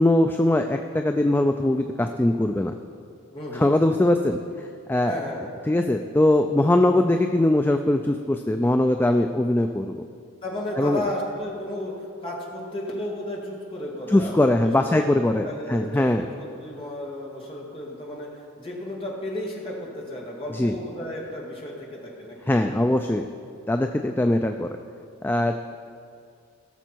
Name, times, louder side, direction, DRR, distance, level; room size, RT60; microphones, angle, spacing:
voice 1, 0.0-2.7 3.5-4.4 4.9-5.2 5.7-10.0 10.8-11.0 14.1-16.2 20.5-20.7 22.5-23.3 23.7-24.7 25.2-25.6, left 1 dB, 10° left, 5 dB, 0.3 m, -21 dB
voice 2, 3.3-3.8 5.0-5.4 10.4-11.9 12.2-15.1 15.4-18.3 18.6-22.9, left 1 dB, 25° left, -3 dB, 2.2 m, -33 dB
17.5 x 7.0 x 4.6 m, 2.3 s
head